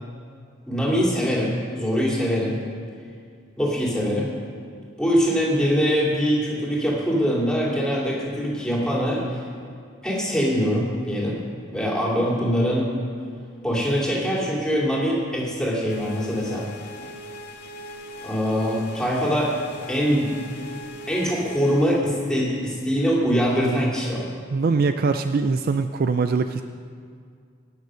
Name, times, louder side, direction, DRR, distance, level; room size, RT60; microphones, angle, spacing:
voice 1, 0.7-2.5 3.6-4.3 5.0-9.4 10.0-11.4 11.7-12.9 13.6-16.7 18.2-19.5 19.9-20.3 21.1-24.3, equal, 5° left, -5 dB, 2.7 m, -23 dB
sound 1, 15.9-22.0, equal, 55° left, 1.9 m, -40 dB
voice 2, 24.5-26.6, right 4 dB, 45° right, 9 dB, 0.4 m, -22 dB
18.5 x 6.6 x 6.3 m, 2.2 s
head